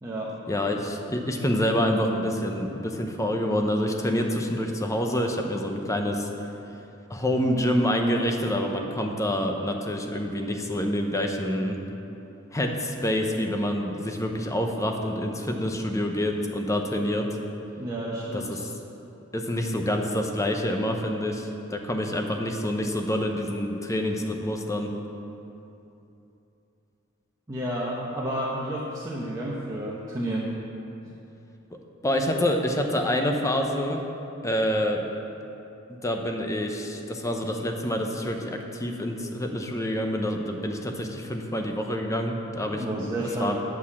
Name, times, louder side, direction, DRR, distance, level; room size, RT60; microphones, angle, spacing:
voice 1, 0.5-6.3 7.1-11.8 12.5-17.3 18.3-18.7 19.3-24.9 32.0-34.0 34.4-35.0 35.9-43.6, equal, 15° left, 3 dB, 0.7 m, -27 dB
voice 2, 17.8-18.5 27.5-30.5 42.8-43.6, right 1 dB, 15° right, -6 dB, 0.9 m, -31 dB
8.1 x 6.4 x 7.3 m, 2.9 s
head